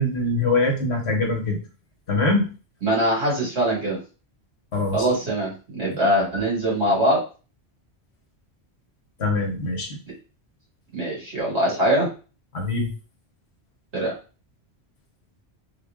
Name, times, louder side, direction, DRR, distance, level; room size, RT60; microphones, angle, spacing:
voice 1, 0.0-1.6 2.1-2.5 4.7-5.1 9.2-9.9 12.5-12.9, left 2 dB, 70° left, 1 dB, 1.3 m, -23 dB
voice 2, 2.8-4.0 4.9-7.2 10.9-12.1 13.9-14.1, right 1 dB, 70° right, -4 dB, 2.2 m, -22 dB
3.7 x 2.5 x 3.5 m, 0.34 s
omnidirectional pair, 1.2 m